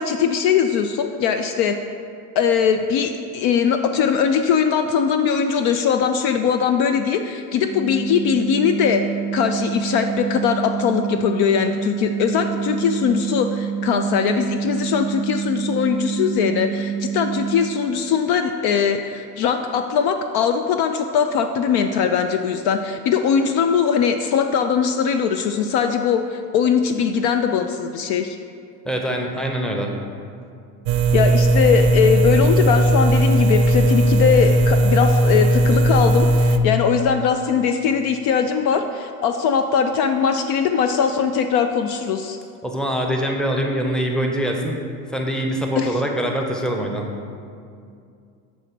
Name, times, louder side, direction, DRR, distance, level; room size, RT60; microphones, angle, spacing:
voice 1, 0.0-1.8 2.4-9.0 9.3-28.4 31.1-42.4 45.8-46.0, left 7 dB, 55° left, 7 dB, 0.5 m, -20 dB
sound 1, 7.6-17.6, right 8 dB, 30° left, 1.3 m, -27 dB
voice 2, 28.8-29.9 42.6-44.8 45.1-47.1, right 1 dB, ahead, 1 dB, 0.7 m, -24 dB
sound 2, 30.9-36.6, right 1 dB, 55° right, 0.6 m, -17 dB
7.1 x 3.0 x 5.9 m, 2.4 s
hypercardioid pair, 75°, 48 cm